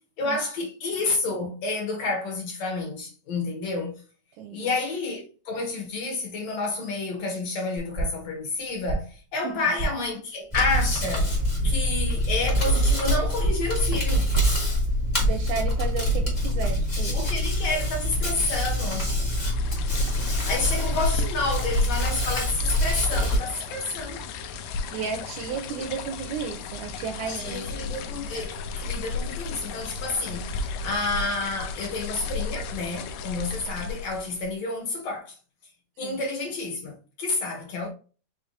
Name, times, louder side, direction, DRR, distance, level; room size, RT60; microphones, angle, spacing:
voice 1, 0.2-4.0 4.5-11.3 11.6-14.3 17.1-19.2 20.4-24.2 27.2-35.4 36.0-37.9, left 3 dB, 60° left, 2.1 m, -30 dB
voice 2, 4.4-4.7 9.4-9.6 15.2-17.3 24.9-27.7 36.0-36.2, right 6 dB, 80° right, 1.8 m, -33 dB
sound 1, 7.8-8.3 8.6-9.2 9.5-10.1 10.4-11.0 11.3-12.0 12.2-12.9 13.1-14.6 14.9-15.6 15.8-16.6, right 2 dB, 60° right, 0.5 m, -32 dB
Hands, 10.5-23.4, equal, 25° left, 0.9 m, -25 dB
sound 2, 19.1-34.5, left 4 dB, 80° left, 1.7 m, -34 dB
5.7 x 3.4 x 2.6 m
omnidirectional pair, 3.8 m